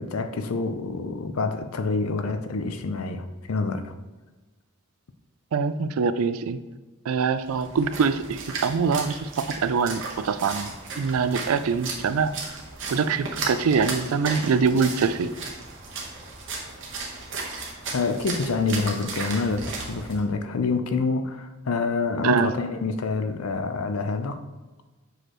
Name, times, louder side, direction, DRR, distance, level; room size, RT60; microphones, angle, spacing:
voice 1, 0.0-3.9 17.9-24.4, left 4 dB, 80° left, 9 dB, 0.5 m, -27 dB
voice 2, 5.5-6.6 7.1-9.1 9.5-10.7 11.0-12.3 12.9-15.3 22.2-22.5, right 5 dB, 85° right, 12 dB, 0.4 m, -24 dB
Splash splatter, 7.4-20.2, right 3 dB, 60° right, 1.1 m, -35 dB
6.5 x 4.9 x 3.0 m, 1.2 s
head